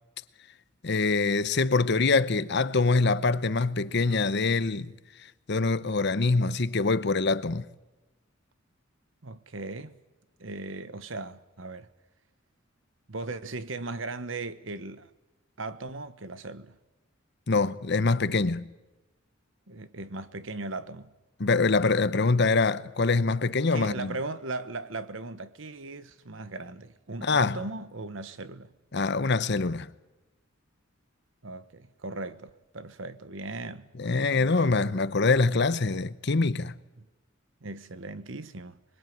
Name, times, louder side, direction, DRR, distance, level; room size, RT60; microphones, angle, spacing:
voice 1, 0.8-4.9 5.5-7.6 17.5-18.7 21.4-24.1 27.2-27.6 28.9-29.9 34.0-36.8, left 3 dB, 55° left, 0.9 m, -24 dB
voice 2, 9.2-9.9 10.4-11.9 13.1-15.1 15.6-16.8 19.7-21.1 23.7-28.7 31.4-33.9 34.3-34.8 37.0-37.1 37.6-38.8, right 3 dB, 70° right, 1.2 m, -38 dB
26.0 x 21.0 x 9.4 m
head